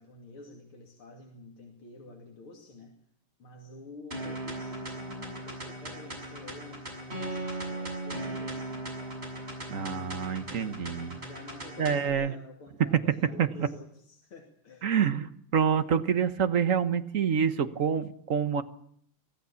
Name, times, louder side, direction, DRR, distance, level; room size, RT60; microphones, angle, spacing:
voice 1, 0.0-2.9 3.4-8.8 11.1-15.0, left 3 dB, 75° left, 1 dB, 3.5 m, -49 dB
sound 1, 4.1-12.1, right 1 dB, 25° right, 6.9 m, -38 dB
voice 2, 9.7-11.2 11.8-12.3 12.8-13.7 14.8-18.6, right 7 dB, 45° right, 10 dB, 1.4 m, -27 dB
24.5 x 17.0 x 7.1 m, 0.69 s
omnidirectional pair, 2.3 m